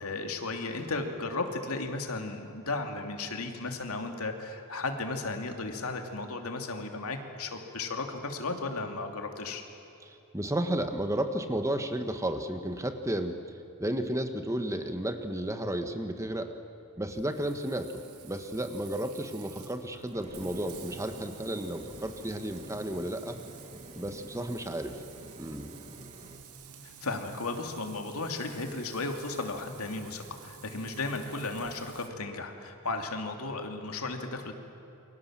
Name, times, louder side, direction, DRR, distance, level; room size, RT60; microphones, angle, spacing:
voice 1, 0.0-9.6 26.8-34.5, left 3 dB, 75° left, 4 dB, 2.7 m, -35 dB
voice 2, 10.0-13.4 13.8-16.5 17.0-23.4 23.9-25.0 25.4-25.7, right 1 dB, 15° right, 7 dB, 1.4 m, -33 dB
Frying (food), 17.1-32.1, right 6 dB, 85° right, 2.5 m, -50 dB
sound 1, 20.1-26.4, right 1 dB, 30° right, 1.9 m, -48 dB
28.5 x 24.0 x 7.5 m, 2.9 s
head